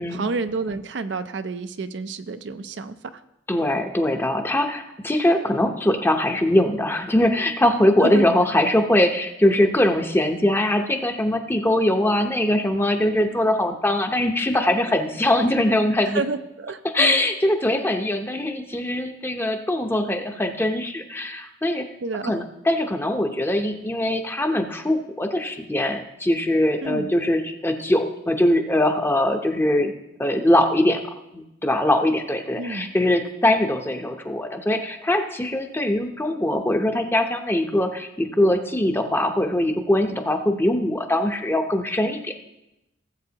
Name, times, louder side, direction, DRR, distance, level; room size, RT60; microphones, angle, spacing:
voice 1, 0.0-3.2 8.0-8.3 16.0-17.2 22.0-22.4 26.8-27.1 32.6-32.9, right 3 dB, 65° right, 10 dB, 0.5 m, -30 dB
voice 2, 3.5-16.2 16.9-21.9 22.2-29.9 30.2-42.3, left 1 dB, 10° left, 5 dB, 0.7 m, -22 dB
18.0 x 7.6 x 2.9 m, 0.90 s
head